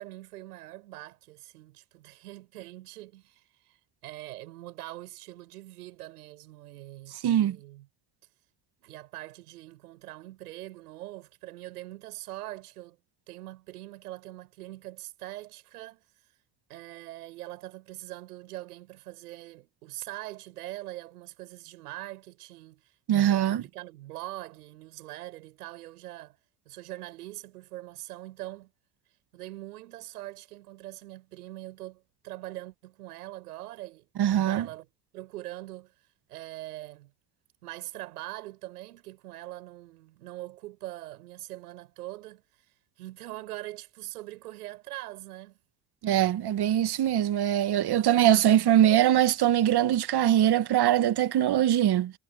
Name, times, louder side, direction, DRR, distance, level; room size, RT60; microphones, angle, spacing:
voice 1, 0.0-7.9 8.8-13.0 13.3-16.0 16.7-26.4 26.6-28.7 29.3-34.9 35.1-35.9 36.3-37.1 37.6-45.6, right 16 dB, 90° right, 7.8 m, -43 dB
voice 2, 7.2-7.6 23.1-23.6 34.2-34.7 46.0-52.1, right 11 dB, 60° right, 1.8 m, -22 dB
hypercardioid pair, 50°, 45 cm